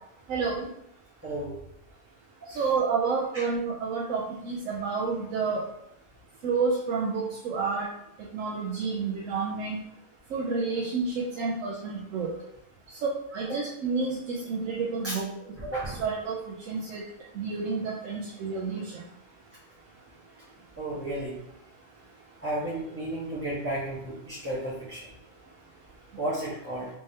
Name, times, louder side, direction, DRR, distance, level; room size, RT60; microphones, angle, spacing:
voice 1, 0.3-0.6 2.6-5.6 6.4-7.9 8.3-9.8 10.3-12.3 13.3-15.2 16.0-16.4 16.7-17.0 17.4-18.9, right 4 dB, 85° right, -3 dB, 1.0 m, -29 dB
voice 2, 15.6-16.0 20.8-21.3 22.4-25.0 26.1-26.9, right 1 dB, 15° right, -11 dB, 0.8 m, -33 dB
3.3 x 3.3 x 2.7 m, 0.80 s
omnidirectional pair, 1.3 m